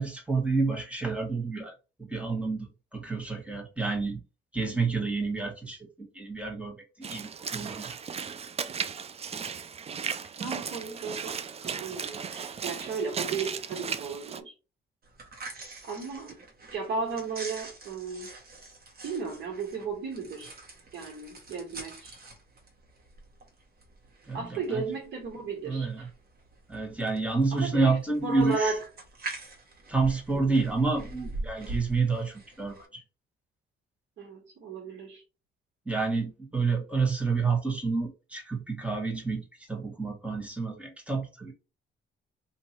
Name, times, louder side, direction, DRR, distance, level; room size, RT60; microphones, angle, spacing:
voice 1, 0.0-1.7 2.0-4.2 4.5-7.9 24.3-24.8 25.6-26.1 26.7-28.7 29.9-33.0 35.8-41.5, right 4 dB, 5° right, 1 dB, 1.5 m, -29 dB
Walk footsteps / Splash splatter, 7.0-14.4, right 6 dB, 30° right, 0.4 m, -36 dB
voice 2, 10.4-14.5 15.8-16.4 16.7-18.3 19.0-20.5 20.9-22.2 24.3-26.1 27.5-28.8 30.3-30.7 34.2-35.2, right 4 dB, 70° right, -1 dB, 1.5 m, -35 dB
sound 1, 15.0-32.9, right 2 dB, 50° right, 1.2 m, -44 dB
3.0 x 2.7 x 4.2 m, 0.31 s
cardioid pair, 90°, 20 cm